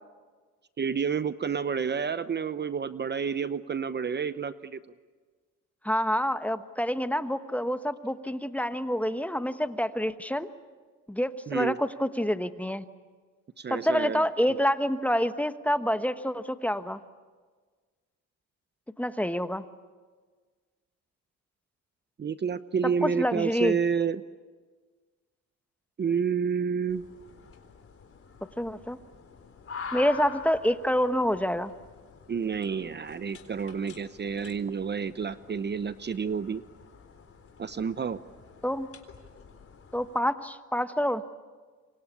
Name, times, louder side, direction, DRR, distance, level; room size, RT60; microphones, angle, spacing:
voice 1, 0.8-4.8 11.5-11.8 13.6-14.2 22.2-24.2 26.0-27.1 32.3-36.6 37.6-38.2, right 6 dB, 35° right, 13 dB, 0.8 m, -29 dB
voice 2, 5.8-10.5 11.1-12.8 13.7-17.0 19.0-19.6 23.0-23.8 28.6-29.0 29.9-31.7 38.6-38.9 39.9-41.2, equal, 5° left, 10 dB, 1.2 m, -27 dB
sound 1, 26.9-40.2, left 5 dB, 45° left, 4.0 m, -47 dB
27.5 x 24.5 x 8.5 m, 1.4 s
cardioid pair, 90°, 30 cm